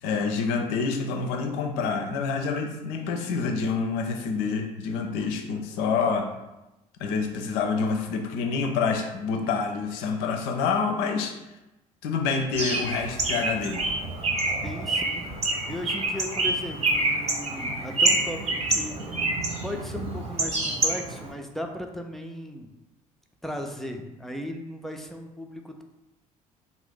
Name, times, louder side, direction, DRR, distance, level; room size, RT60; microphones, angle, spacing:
voice 1, 0.0-6.3 7.0-11.3 12.0-13.8, left 5 dB, 60° left, 3 dB, 0.5 m, -27 dB
Bird, 12.5-21.3, right 2 dB, 35° right, 0.6 m, -27 dB
voice 2, 14.5-15.3 15.7-18.4 18.7-19.2 19.6-22.7 23.4-25.8, equal, ahead, 3 dB, 0.3 m, -36 dB
2.5 x 2.0 x 3.5 m, 0.97 s
figure-of-eight pair, 55°, 19 cm